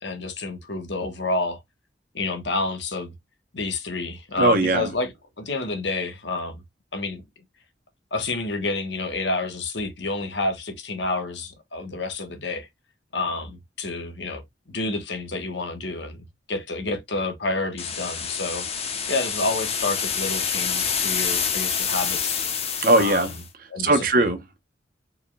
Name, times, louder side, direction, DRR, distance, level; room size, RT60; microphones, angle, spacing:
voice 1, 0.0-1.6 2.1-3.1 3.5-6.6 6.9-7.2 8.1-12.7 13.1-14.4 14.7-22.5 22.9-23.3 23.7-24.3, left 3 dB, 70° left, 1.4 m, -29 dB
voice 2, 4.4-4.9 22.8-23.3 23.8-24.6, right 2 dB, 50° right, 1.1 m, -20 dB
sound 1, 17.8-23.4, left 6 dB, 30° left, 1.0 m, -27 dB
5.0 x 3.9 x 2.4 m
head